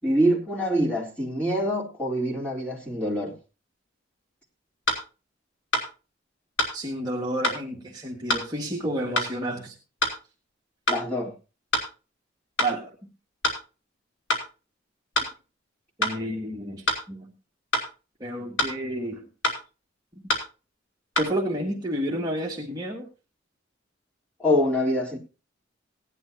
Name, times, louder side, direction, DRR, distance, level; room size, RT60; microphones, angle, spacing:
voice 1, 0.0-3.3 10.9-11.3 24.4-25.2, equal, 5° left, 3.3 m, -25 dB
sound 1, 4.9-5.0 5.7-5.9 6.6-6.7 7.4-7.6 8.3-8.5 9.2-9.3 10.0-10.2 10.9-11.0 11.7-11.9 12.6-12.7 13.4-13.6 14.3-14.5 15.2-15.3 16.0-16.2 16.9-17.0 17.7-17.9 18.6-18.8 19.4-19.6 20.3-20.5 21.2-21.3, left 1 dB, 80° left, 2.9 m, -25 dB
voice 2, 6.7-9.8 12.6-13.1 16.0-17.3 18.2-19.3 21.1-23.1, right 1 dB, 20° right, 1.6 m, -30 dB
17.5 x 11.0 x 2.7 m
head